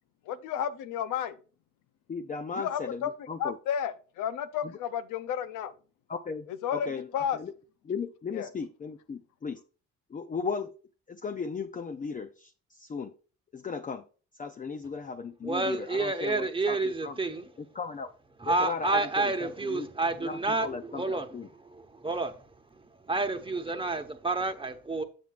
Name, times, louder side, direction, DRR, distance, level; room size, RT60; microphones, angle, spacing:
voice 1, 0.3-1.4 2.5-3.1 3.4-5.7 6.5-6.9 7.1-7.4 8.3-8.5, left 8 dB, 90° left, 0.7 m, -32 dB
voice 2, 2.1-3.6 4.6-4.7 6.1-6.5 6.7-7.5 7.8-9.6 10.1-10.7 11.1-13.1 13.5-14.1 14.4-17.2 17.6-18.1 18.5-19.9 20.2-21.5, left 5 dB, 25° left, 0.5 m, -36 dB
voice 3, 15.4-17.4 18.4-20.7 20.9-21.2 21.7-22.3 23.1-25.0, right 3 dB, 15° right, 1.0 m, -29 dB
7.6 x 7.1 x 2.4 m
cardioid pair, 90°, 30 cm